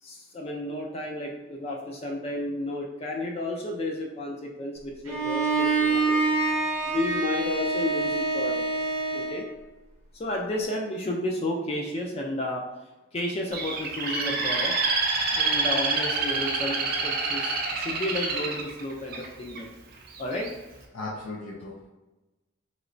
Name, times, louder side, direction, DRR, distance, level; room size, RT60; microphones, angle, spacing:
voice 1, 0.0-6.2 6.8-8.6 9.1-9.5 10.1-12.6 13.1-14.8 15.3-19.7 20.2-20.5, left 1 dB, 30° left, 0 dB, 0.3 m, -32 dB
Bowed string instrument, 5.1-9.5, right 3 dB, 80° right, 0.7 m, -26 dB
Bird, 13.5-19.6 20.1-20.5, right 4 dB, 45° right, 0.4 m, -27 dB
voice 2, 20.9-21.9, left 2 dB, 90° left, -5 dB, 0.6 m, -37 dB
3.0 x 2.9 x 2.5 m, 1.1 s
head